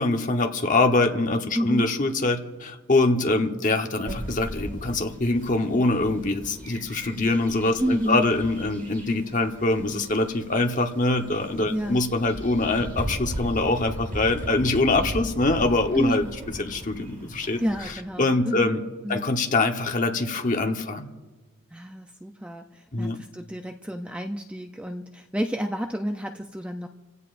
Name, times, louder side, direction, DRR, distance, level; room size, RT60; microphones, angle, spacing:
voice 1, 0.0-16.2 16.6-17.6 18.2-18.8 19.1-21.1 22.9-23.2, left 2 dB, 35° left, 4 dB, 1.1 m, -24 dB
voice 2, 1.5-1.9 7.8-8.3 11.7-12.0 15.9-16.3 17.6-18.7 19.0-19.3 21.7-26.9, equal, 5° right, 5 dB, 0.5 m, -29 dB
sound 1, 4.0-17.9, equal, 40° right, 4.6 m, -38 dB
28.0 x 16.5 x 2.6 m, 1.3 s
head